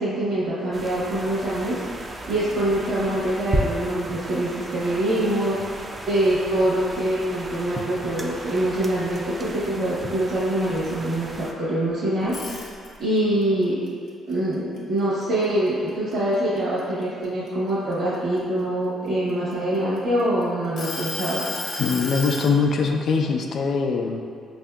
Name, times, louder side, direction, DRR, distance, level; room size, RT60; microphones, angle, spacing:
voice 1, 0.0-5.6 6.1-12.3 13.0-13.8 14.3-21.4, right 1 dB, 70° right, -9 dB, 0.9 m, -24 dB
sound 1, 0.7-11.5, right 1 dB, 25° right, 0.3 m, -34 dB
sound 2, 12.2-13.2 13.6-15.4 15.9-16.1 16.6-18.4 19.1-20.2 20.8-22.5, left 3 dB, 80° left, 0.7 m, -33 dB
voice 2, 21.8-24.2, left 4 dB, 65° left, 2 dB, 0.3 m, -22 dB
4.9 x 2.6 x 2.3 m, 2.2 s
cardioid pair, 90°, 0 cm